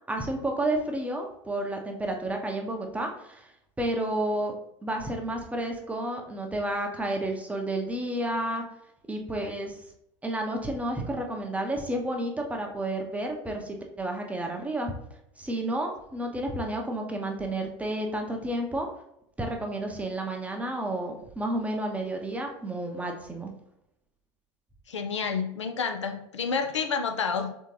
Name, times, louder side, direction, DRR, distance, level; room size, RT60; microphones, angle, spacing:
voice 1, 0.1-3.5 3.8-4.5 4.8-8.6 9.1-9.8 10.2-14.9 15.4-18.9 19.4-23.5, right 1 dB, 10° right, 2 dB, 0.7 m, -31 dB
voice 2, 24.9-27.5, left 5 dB, 80° left, 6 dB, 0.4 m, -29 dB
3.6 x 3.6 x 3.0 m, 0.77 s
figure-of-eight pair, 75°, 15 cm